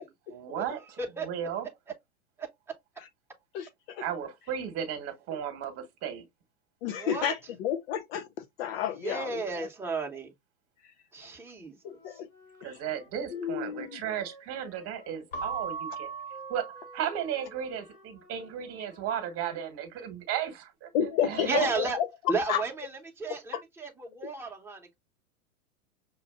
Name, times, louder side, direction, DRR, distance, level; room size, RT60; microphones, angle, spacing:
voice 1, 0.3-0.8 1.2-1.7 4.0-6.2 12.6-16.1 16.5-20.9 21.2-21.7, right 9 dB, 30° right, 1.3 m, -34 dB
voice 2, 3.5-4.0 6.8-8.3 8.6-9.4 11.8-12.3 13.3-14.0 20.9-22.1 22.5-22.6 23.5-23.6, left 9 dB, 40° left, 0.6 m, -30 dB
voice 3, 6.9-7.3 9.0-10.3 11.1-12.2 21.5-22.0 22.3-25.0, right 4 dB, 5° right, 1.1 m, -33 dB
Wind instrument woodwind instrument, 11.8-19.3, equal, 85° left, 2.6 m, -54 dB
Keyboard (musical) / Bell, 15.3-17.7, right 5 dB, 65° left, 2.3 m, -39 dB
6.2 x 2.4 x 2.4 m
hypercardioid pair, 115°, 43 cm